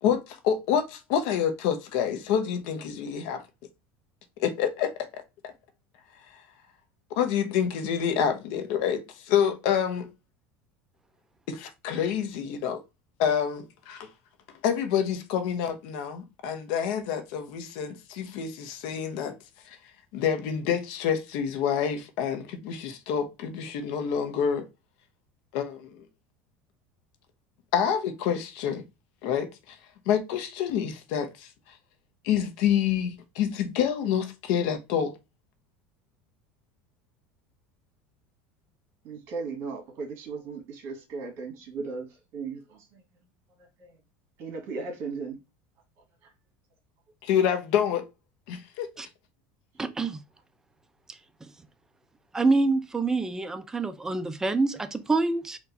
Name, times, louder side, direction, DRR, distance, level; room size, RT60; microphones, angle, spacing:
voice 1, 0.0-3.4 4.4-4.9 5.4-5.5 7.1-9.0 9.3-10.1 11.5-12.8 13.2-14.1 14.6-19.3 20.1-24.7 25.5-26.0 27.7-28.8 29.2-29.7 30.1-31.5 32.2-35.1 47.2-48.1 48.5-48.9, left 8 dB, 70° left, 0.9 m, -27 dB
voice 2, 39.0-43.0 43.6-44.0 44.4-45.4 46.2-46.3, right 4 dB, 55° right, 1.7 m, -37 dB
voice 3, 49.8-50.2 51.1-51.5 52.3-55.6, right 3 dB, 10° right, 0.5 m, -26 dB
4.4 x 2.6 x 4.0 m
supercardioid pair, 125°, 5 cm